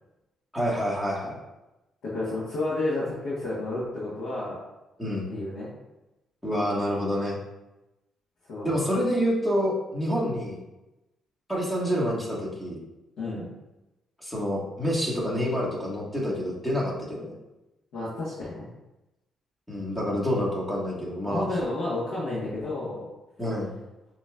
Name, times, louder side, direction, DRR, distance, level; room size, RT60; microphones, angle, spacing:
voice 1, 0.5-1.4 5.0-5.3 6.4-7.4 8.6-10.6 11.5-12.8 14.2-17.3 19.7-21.4 23.4-23.7, equal, 10° left, -5 dB, 1.6 m, -27 dB
voice 2, 2.0-4.6 5.3-5.7 8.5-8.8 13.2-13.5 17.9-18.7 21.2-23.0, left 2 dB, 80° left, -9 dB, 1.4 m, -31 dB
6.7 x 3.0 x 2.4 m, 0.98 s
cardioid pair, 90°, 0 cm